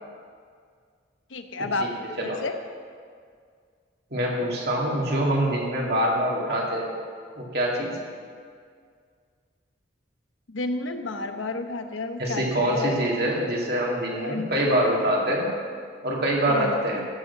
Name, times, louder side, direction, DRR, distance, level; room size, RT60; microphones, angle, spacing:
voice 1, 1.3-1.9 2.2-2.5 10.5-12.9 14.2-14.5 16.5-17.1, left 2 dB, 90° left, 7 dB, 0.9 m, -31 dB
voice 2, 4.1-6.9 7.4-8.0 12.2-15.5 16.0-17.0, right 1 dB, 55° right, -2 dB, 2.5 m, -25 dB
15.5 x 6.6 x 7.0 m, 2.1 s
head